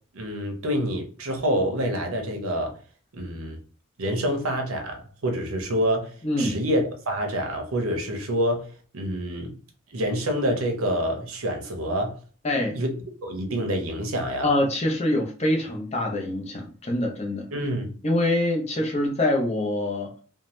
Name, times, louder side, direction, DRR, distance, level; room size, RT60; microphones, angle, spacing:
voice 1, 0.1-2.8 3.1-3.6 4.0-8.7 8.9-9.5 9.9-12.2 12.7-14.5 17.5-17.9, equal, 90° right, 0.8 m, -27 dB
voice 2, 6.2-6.6 12.4-12.8 14.4-17.5 18.0-20.1, left 1 dB, 30° left, 0.6 m, -25 dB
2.7 x 2.1 x 3.1 m
head